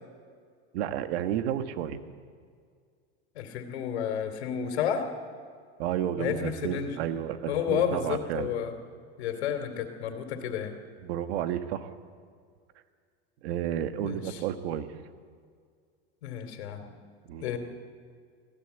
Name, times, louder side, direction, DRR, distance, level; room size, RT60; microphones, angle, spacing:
voice 1, 0.7-2.0 5.8-8.5 11.0-11.9 13.4-14.9 17.3-17.5, right 10 dB, 75° right, 10 dB, 1.5 m, -31 dB
voice 2, 3.3-5.1 6.2-7.0 7.5-8.8 9.2-10.7 13.9-14.4 16.2-16.9 17.4-17.6, left 8 dB, 85° left, 6 dB, 2.8 m, -31 dB
20.5 x 15.5 x 8.1 m, 2.1 s
supercardioid pair, 130°, 32 cm